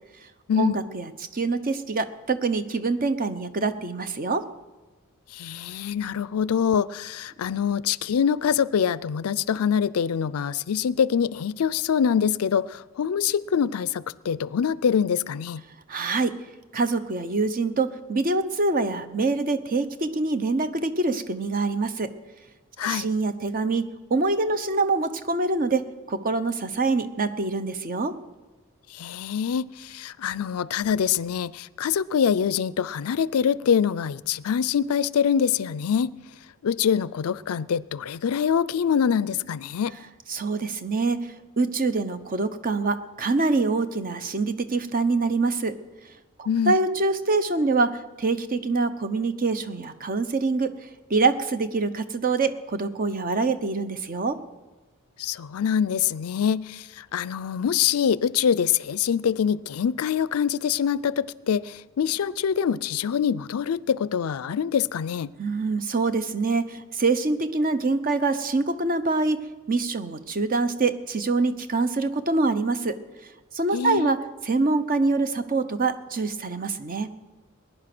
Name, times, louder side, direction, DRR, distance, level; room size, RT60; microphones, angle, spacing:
voice 1, 0.6-4.5 15.9-16.3 16.7-22.1 22.8-25.8 26.1-28.1 40.3-41.3 41.6-45.8 46.4-50.7 51.1-54.4 65.4-73.0 73.5-74.2 74.4-77.1, right 3 dB, 40° right, 0.8 m, -25 dB
voice 2, 5.3-15.6 22.8-23.1 28.9-36.1 36.6-39.9 46.5-46.7 55.2-65.3 73.7-74.1, left 7 dB, 75° left, 0.4 m, -24 dB
20.0 x 10.0 x 6.0 m
head